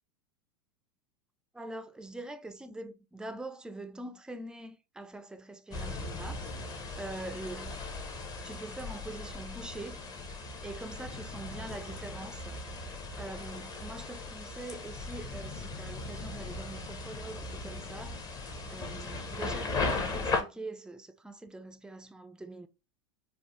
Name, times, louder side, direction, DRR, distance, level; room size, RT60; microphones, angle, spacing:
voice 1, 1.5-7.9 8.4-10.1 10.6-12.6 13.1-22.7, right 2 dB, 5° right, 0.3 m, -44 dB
sound 1, 5.7-20.4, left 3 dB, 25° left, 0.7 m, -38 dB
3.5 x 2.0 x 2.9 m
hypercardioid pair, 100°, 15 cm